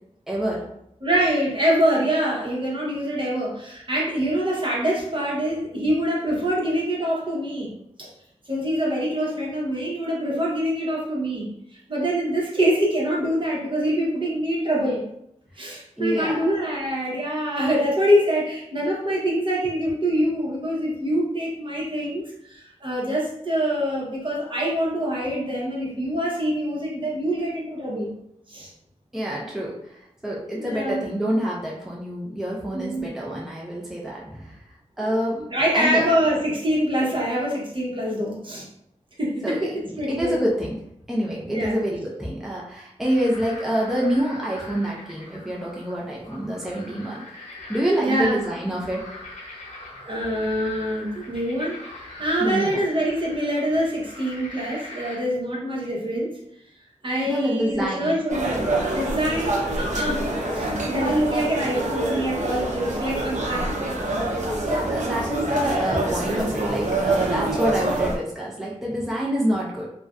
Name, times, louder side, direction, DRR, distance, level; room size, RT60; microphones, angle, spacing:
voice 1, 0.3-0.7 15.6-15.7 16.0-16.5 29.1-34.6 35.0-35.5 35.7-36.1 39.4-39.7 40.1-40.8 41.1-47.2 47.7-49.1 52.4-52.8 57.3-58.1 64.6-69.9, equal, 5° right, -4 dB, 0.5 m, -27 dB
voice 2, 1.0-7.7 8.0-8.1 8.5-15.0 15.6-28.1 28.5-28.7 30.5-31.1 32.7-33.1 35.0-38.7 39.2-39.7 40.0-40.4 41.5-41.8 48.0-48.3 50.0-56.4 57.0-58.7 58.9-63.7, equal, 45° right, -4 dB, 0.9 m, -25 dB
sound 1, 43.0-55.2, left 2 dB, 85° left, 0.7 m, -42 dB
sound 2, 58.3-68.2, right 2 dB, 75° right, 0.5 m, -25 dB
2.4 x 2.1 x 2.3 m, 0.76 s
cardioid pair, 60°, 12 cm